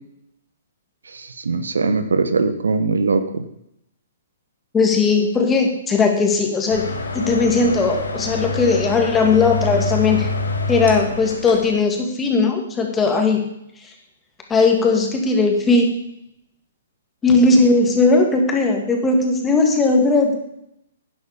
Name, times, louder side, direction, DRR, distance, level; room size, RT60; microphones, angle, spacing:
voice 1, 1.1-3.4, right 4 dB, 70° right, 10 dB, 1.1 m, -21 dB
voice 2, 4.7-6.9 7.1-10.3 10.7-13.4 14.5-15.9 17.2-20.4, left 3 dB, 15° left, 2 dB, 2.4 m, -17 dB
sound 1, 6.7-11.8, left 2 dB, 80° left, 2.4 m, -26 dB
12.0 x 10.0 x 5.2 m, 0.79 s
figure-of-eight pair, 120°, 0 cm